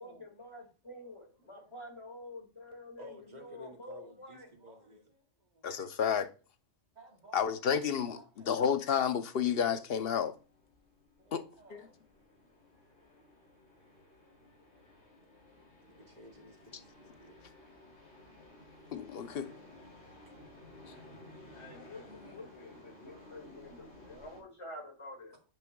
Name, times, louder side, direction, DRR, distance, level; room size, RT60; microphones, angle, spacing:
voice 1, 0.0-4.5 21.5-25.4, left 1 dB, 25° left, 2.1 m, -48 dB
voice 2, 3.0-5.7 7.0-7.4 8.1-8.5 11.2-12.0 15.1-15.2 15.9-17.4 20.8-21.4 22.1-22.5, equal, 35° right, 1.8 m, -55 dB
voice 3, 5.6-6.3 7.3-10.3 11.3-11.4 11.7-11.9 18.9-19.5 20.8-20.9, left 7 dB, 55° left, 0.9 m, -31 dB
sound 1, 10.2-24.4, left 1 dB, 85° left, 3.9 m, -56 dB
9.7 x 8.5 x 2.3 m
omnidirectional pair, 1.3 m